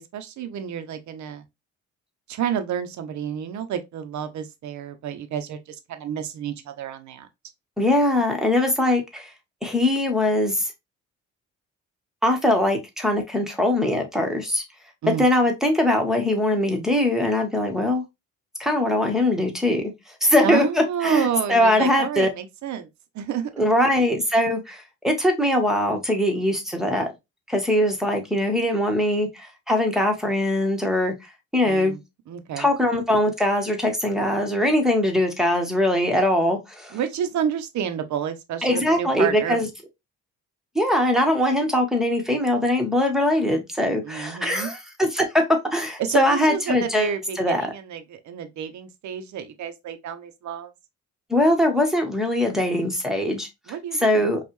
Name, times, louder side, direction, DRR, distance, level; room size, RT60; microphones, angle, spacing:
voice 1, 0.0-1.4 2.3-7.3 15.0-15.3 20.4-22.9 23.1-23.7 31.6-32.0 32.3-32.7 36.9-39.6 44.0-44.7 46.0-50.7 53.7-54.3, right 9 dB, 70° right, 0.8 m, -29 dB
voice 2, 7.8-9.3 9.6-10.7 12.2-14.6 15.2-18.0 18.6-19.9 20.2-22.3 23.6-27.1 27.5-31.1 31.5-32.0 32.6-37.0 38.6-39.7 40.7-45.4 45.7-47.7 51.3-53.5 54.0-54.4, left 1 dB, ahead, 1.4 m, -21 dB
5.3 x 2.5 x 3.1 m
cardioid pair, 90°, 30 cm